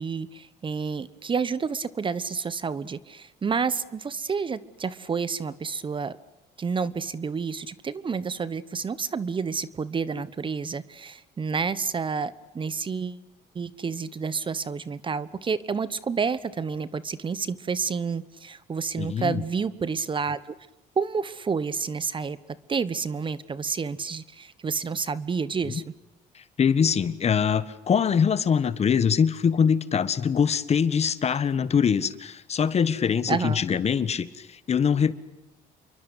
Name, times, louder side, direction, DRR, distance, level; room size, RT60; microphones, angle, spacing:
voice 1, 0.0-6.2 6.6-13.2 13.5-20.5 21.0-22.4 22.7-25.8 33.3-33.6, right 5 dB, 30° right, 17 dB, 1.1 m, -29 dB
voice 2, 19.0-19.4 25.6-25.7 26.3-35.1, left 7 dB, 40° left, 15 dB, 1.6 m, -23 dB
28.5 x 23.5 x 8.2 m, 0.97 s
cardioid pair, 110°, 17 cm